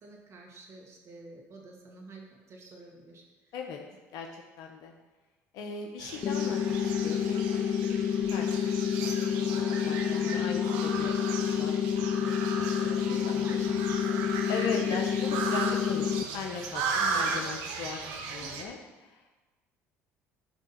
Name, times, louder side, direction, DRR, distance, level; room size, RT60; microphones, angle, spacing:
voice 1, 0.0-3.2 5.6-5.9 13.1-14.9 15.2-15.5 17.1-17.5 18.4-18.7, right 2 dB, 45° right, -1 dB, 2.2 m, -48 dB
voice 2, 4.1-4.9 5.5-8.0 8.3-11.8 12.3-12.4 12.8-13.4 14.5-18.0 18.3-19.2, left 5 dB, 70° left, 2 dB, 0.9 m, -39 dB
sound 1, 6.0-18.6, right 5 dB, 80° right, 1.0 m, -36 dB
sound 2, 6.2-16.2, left 8 dB, 40° left, 0.4 m, -29 dB
9.9 x 3.6 x 5.9 m, 1.2 s
supercardioid pair, 80°, 7 cm